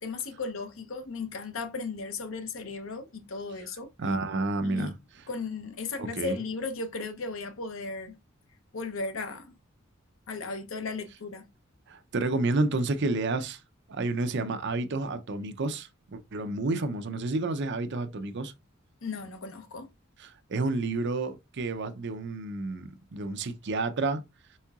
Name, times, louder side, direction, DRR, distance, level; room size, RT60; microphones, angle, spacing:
voice 1, 0.0-3.9 4.6-4.9 5.3-8.1 8.7-9.5 10.3-11.5 19.0-19.9, left 4 dB, 70° left, 0.8 m, -36 dB
voice 2, 4.0-4.9 6.2-6.3 11.9-13.6 13.9-18.5 20.2-24.2, right 3 dB, 60° right, 0.6 m, -30 dB
4.6 x 4.2 x 2.4 m
head